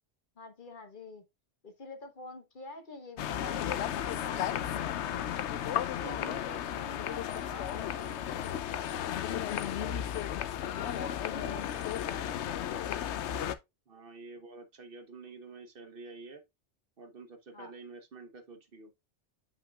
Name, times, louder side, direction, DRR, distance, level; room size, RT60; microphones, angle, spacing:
voice 1, 0.4-1.2 1.6-5.2 6.0-10.0 10.8-13.1 17.5-17.7, left 3 dB, 45° left, 1.2 m, -48 dB
sound 1, 3.2-13.6, left 10 dB, 75° left, 0.9 m, -34 dB
voice 2, 6.0-6.4 13.9-16.4 17.0-18.9, right 3 dB, 55° right, 1.1 m, -48 dB
7.7 x 5.7 x 2.3 m
omnidirectional pair, 1.2 m